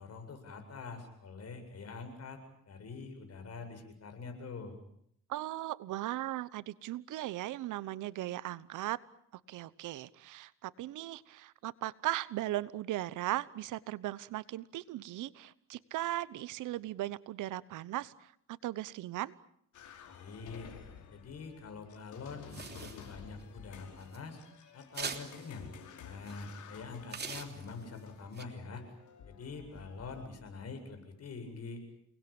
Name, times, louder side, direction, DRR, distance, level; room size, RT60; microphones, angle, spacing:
voice 1, 0.0-4.7 20.1-20.7 21.1-24.4 24.7-25.7 26.0-28.8 29.2-31.8, left 4 dB, 55° left, 6 dB, 8.0 m, -45 dB
voice 2, 5.3-9.0 9.3-19.3, right 15 dB, 85° right, 18 dB, 1.1 m, -38 dB
sound 1, 19.7-30.3, left 7 dB, 75° left, 5.2 m, -53 dB
sound 2, 22.5-23.4 24.0-24.2 24.9-25.5 26.3-26.4 27.1-28.0 28.3-28.4, right 5 dB, 35° right, 3.3 m, -42 dB
30.0 x 20.0 x 8.9 m, 0.71 s
cardioid pair, 90°, 30 cm